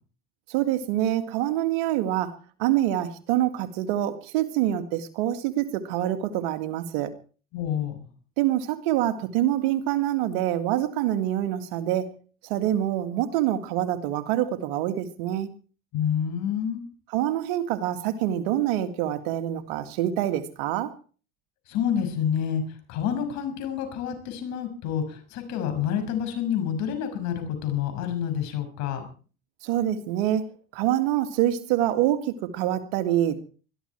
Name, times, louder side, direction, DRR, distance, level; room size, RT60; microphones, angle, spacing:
voice 1, 0.5-7.1 8.4-12.1 12.4-15.5 17.1-20.9 29.6-33.4, right 12 dB, 85° right, 9 dB, 2.1 m, -26 dB
voice 2, 7.5-8.1 15.9-16.8 21.7-22.6 22.9-29.1, left 9 dB, 65° left, 7 dB, 6.2 m, -28 dB
21.5 x 13.0 x 4.6 m, 0.40 s
supercardioid pair, 100°, 29 cm